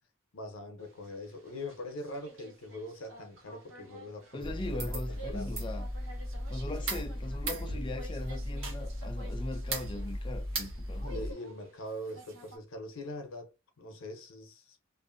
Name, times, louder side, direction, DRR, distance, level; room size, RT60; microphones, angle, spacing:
voice 1, 0.3-5.6 11.0-14.8, left 1 dB, 90° left, 0.7 m, -43 dB
sound 1, 0.8-12.6, right 2 dB, 70° right, 0.7 m, -52 dB
voice 2, 4.3-5.9 6.5-11.2, left 2 dB, 25° left, 0.4 m, -40 dB
sound 2, 4.4-11.3, equal, 85° right, 1.3 m, -36 dB
2.6 x 2.5 x 2.5 m
head